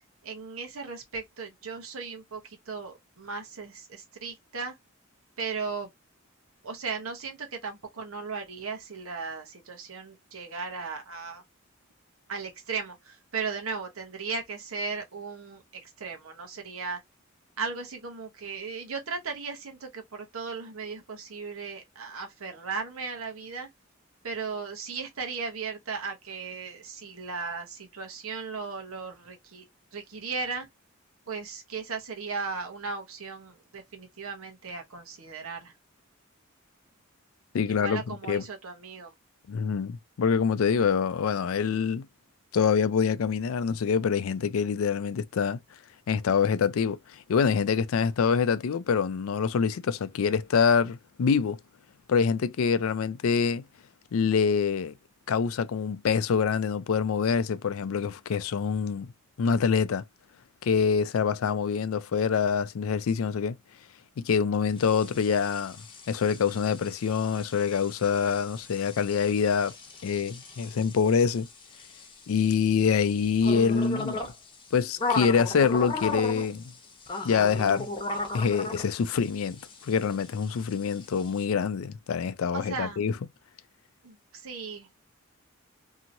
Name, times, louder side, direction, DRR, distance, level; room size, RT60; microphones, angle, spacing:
voice 1, 0.2-4.8 5.4-5.9 6.6-11.4 12.3-17.0 17.6-23.7 24.2-29.7 29.9-30.7 31.3-35.7 37.7-39.1 82.5-83.0 84.0-84.9, right 5 dB, 85° right, 0.9 m, -36 dB
voice 2, 37.5-38.0 38.3-38.4 39.5-42.1 42.5-45.6 46.1-51.6 52.1-53.6 54.1-54.9 55.3-59.1 59.4-60.0 60.6-63.6 64.2-65.8 66.1-69.7 70.0-71.5 72.3-74.2 74.7-76.7 77.2-77.9 78.3-83.1, left 6 dB, 80° left, 0.4 m, -25 dB
sound 1, 64.8-81.4, left 3 dB, 25° left, 0.9 m, -37 dB
2.9 x 2.8 x 2.6 m
head